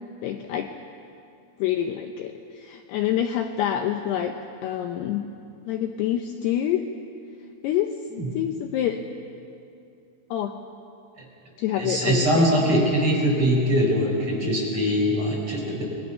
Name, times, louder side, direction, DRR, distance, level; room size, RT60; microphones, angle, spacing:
voice 1, 0.2-0.7 1.6-4.3 4.6-5.3 5.7-6.9 7.6-7.9 8.3-9.0 10.3-10.5 11.6-12.5, left 11 dB, 90° left, 5 dB, 2.3 m, -26 dB
voice 2, 11.8-15.8, equal, 30° right, -3 dB, 5.0 m, -22 dB
28.5 x 21.5 x 5.6 m, 2.6 s
omnidirectional pair, 5.8 m